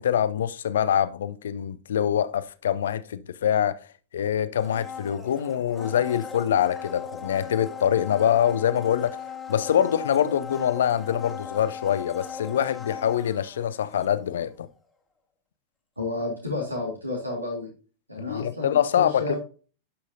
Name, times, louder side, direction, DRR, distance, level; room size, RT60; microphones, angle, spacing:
voice 1, 0.0-3.8 4.1-9.2 9.5-14.7 18.3-19.4, left 9 dB, 65° left, 0.5 m, -24 dB
Domestic sounds home sounds, 4.6-14.5 14.8-14.9, left 6 dB, 10° left, 1.5 m, -39 dB
voice 2, 16.0-17.7 18.1-19.4, left 2 dB, 85° right, 1.9 m, -31 dB
11.0 x 5.6 x 2.6 m
figure-of-eight pair, 90°, 0 cm